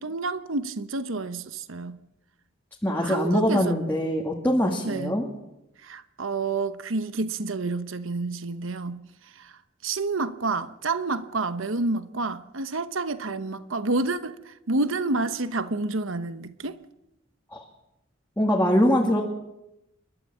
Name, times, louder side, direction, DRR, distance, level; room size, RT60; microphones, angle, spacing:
voice 1, 0.0-2.0 2.9-3.8 4.8-5.2 5.8-9.0 9.3-16.8, right 3 dB, 75° right, 1.0 m, -29 dB
voice 2, 2.8-5.3 17.5-17.6 18.4-19.2, equal, 10° left, 2.2 m, -23 dB
29.0 x 13.0 x 7.4 m
head